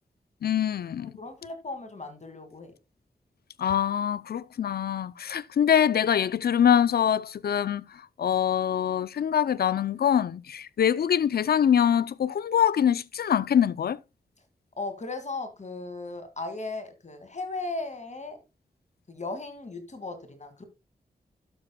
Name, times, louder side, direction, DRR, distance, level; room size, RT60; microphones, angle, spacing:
voice 1, 0.4-1.1 3.6-14.0, left 9 dB, 75° left, 0.5 m, -24 dB
voice 2, 1.0-2.7 14.8-18.4 19.1-20.6, left 3 dB, 45° left, 2.2 m, -36 dB
12.5 x 6.7 x 2.2 m
cardioid pair, 50°, 16 cm